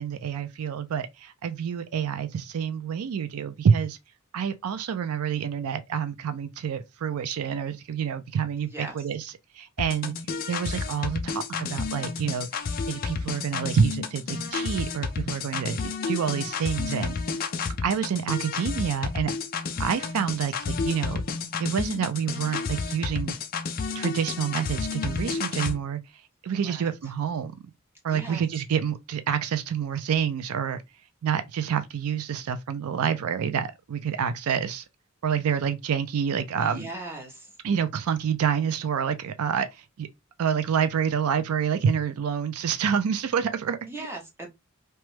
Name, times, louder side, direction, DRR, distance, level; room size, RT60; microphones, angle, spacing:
voice 1, 0.0-4.0 4.3-10.1 10.5-12.5 12.9-17.2 17.8-19.3 19.8-21.2 21.6-23.4 23.9-26.0 26.4-27.5 28.0-30.8 31.2-34.8 35.2-36.9 37.6-40.1 40.4-44.1, right 7 dB, 85° right, 0.4 m, -27 dB
sound 1, 9.8-25.8, left 5 dB, 40° left, 0.3 m, -31 dB
voice 2, 28.1-28.4 36.6-37.5 43.9-44.5, right 2 dB, 10° right, 0.7 m, -38 dB
3.0 x 2.2 x 3.1 m
head